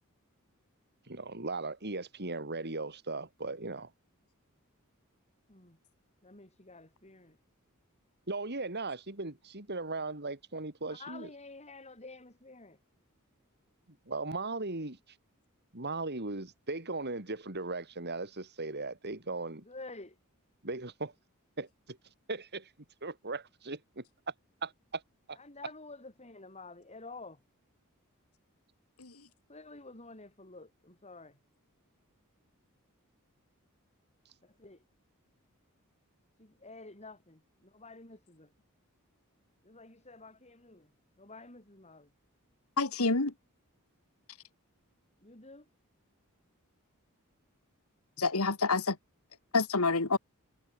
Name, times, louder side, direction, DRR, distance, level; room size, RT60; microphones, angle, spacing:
voice 1, 1.1-3.9 8.3-11.3 14.1-15.0 15.7-19.6 20.6-21.1 21.6-22.0 22.3-22.7 23.0-24.3 24.6-25.0 25.3-25.4, right 3 dB, 50° right, 3.8 m, -38 dB
voice 2, 5.5-5.8 6.2-7.4 10.8-12.8 19.6-20.2 25.4-27.4 29.5-31.4 34.4-34.8 36.4-38.5 39.6-40.9 41.2-42.1 45.2-45.7, left 3 dB, 30° left, 6.8 m, -50 dB
voice 3, 42.8-43.3 48.2-49.0 49.5-50.2, left 3 dB, 90° left, 2.0 m, -28 dB
head